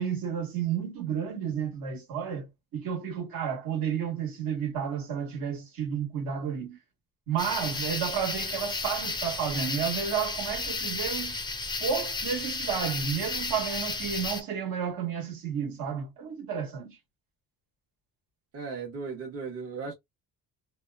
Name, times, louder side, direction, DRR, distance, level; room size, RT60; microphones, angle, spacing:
voice 1, 0.0-6.8 7.3-11.4 11.8-17.0, right 7 dB, 65° right, 1.3 m, -31 dB
sound 1, 7.4-14.4, left 3 dB, 10° left, 0.4 m, -33 dB
voice 2, 18.5-19.9, right 5 dB, 40° right, 0.9 m, -36 dB
2.8 x 2.1 x 2.2 m
cardioid pair, 140°, 37 cm